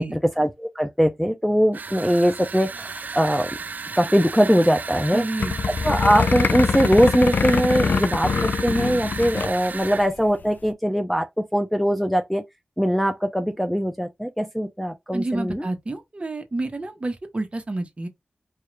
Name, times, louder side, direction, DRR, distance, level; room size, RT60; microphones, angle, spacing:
voice 1, 0.0-3.5 4.0-5.2 5.8-12.4 12.8-15.7, equal, ahead, 0.5 m, -21 dB
sound 1, 1.7-10.1, right 4 dB, 60° right, 0.4 m, -34 dB
voice 2, 5.1-5.5 15.1-18.1, right 2 dB, 40° right, 1.1 m, -29 dB
sound 2, 5.4-9.5 9.8-9.9 10.2-10.5, left 5 dB, 65° left, 0.3 m, -24 dB
4.7 x 2.4 x 3.2 m
wide cardioid pair, 75°, 3 cm